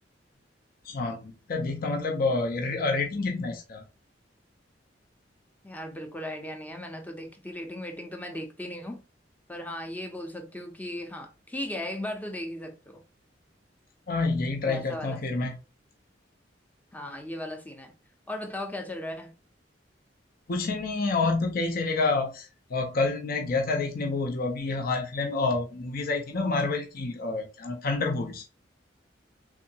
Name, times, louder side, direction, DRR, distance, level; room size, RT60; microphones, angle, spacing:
voice 1, 0.9-3.8 14.1-15.6 20.5-28.5, left 3 dB, 50° left, 0.6 m, -28 dB
voice 2, 5.6-9.0 9.5-13.0 14.6-15.5 16.9-17.9 18.3-19.3, left 1 dB, 10° left, 0.6 m, -37 dB
3.5 x 2.8 x 2.8 m
head